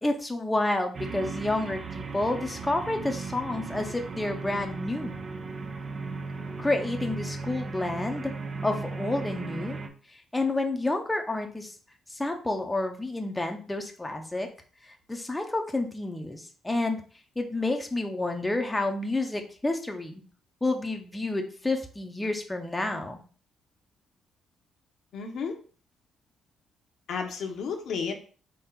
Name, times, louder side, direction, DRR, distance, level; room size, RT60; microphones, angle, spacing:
voice 1, 0.0-5.1 6.6-8.4 8.6-9.8 10.3-11.7 12.1-14.5 14.8-17.0 17.4-20.2 20.6-23.2, left 2 dB, 10° left, 4 dB, 0.7 m, -29 dB
sound 1, 0.9-9.9, right 4 dB, 40° right, 0.6 m, -36 dB
voice 2, 25.1-25.6 27.1-28.1, left 5 dB, 70° left, 3 dB, 0.9 m, -32 dB
4.4 x 2.9 x 3.7 m, 0.40 s
cardioid pair, 90°, 0 cm